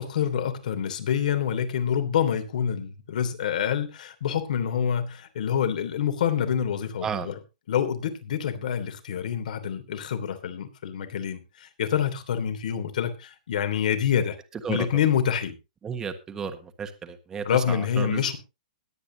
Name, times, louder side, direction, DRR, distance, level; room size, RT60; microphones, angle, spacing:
voice 1, 0.0-7.3 7.7-14.4 14.7-15.6 17.4-18.4, left 8 dB, 60° left, 8 dB, 3.0 m, -27 dB
voice 2, 15.8-18.2, right 6 dB, 10° right, 7 dB, 1.4 m, -33 dB
21.0 x 8.8 x 2.8 m, 0.27 s
hypercardioid pair, 155°, 5 cm